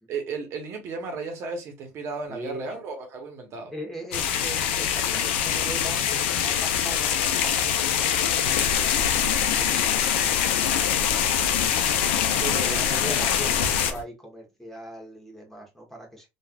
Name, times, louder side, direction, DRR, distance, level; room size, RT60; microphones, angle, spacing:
voice 1, 0.1-3.7 12.4-13.4, right 4 dB, 45° right, 1.0 m, -34 dB
voice 2, 2.3-2.7 3.7-7.9 8.2-11.7 12.1-16.3, right 1 dB, 5° left, 1.1 m, -41 dB
sound 1, 4.1-13.9, left 9 dB, 85° left, 0.4 m, -24 dB
sound 2, 8.6-14.0, left 2 dB, 55° left, 0.8 m, -36 dB
3.2 x 2.4 x 2.3 m
supercardioid pair, 115°, 6 cm